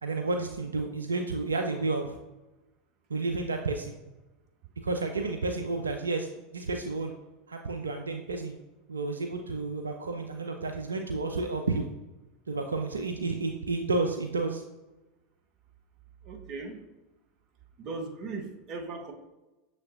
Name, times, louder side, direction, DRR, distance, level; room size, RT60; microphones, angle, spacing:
voice 1, 0.0-2.2 3.1-4.0 4.8-6.3 6.5-7.1 7.5-8.6 8.9-11.9 12.5-14.6, right 3 dB, 80° right, 4 dB, 0.3 m, -31 dB
voice 2, 16.2-16.8 17.8-19.1, right 3 dB, 45° right, 4 dB, 0.8 m, -38 dB
6.6 x 3.2 x 2.4 m, 1.1 s
figure-of-eight pair, 80°, 0 cm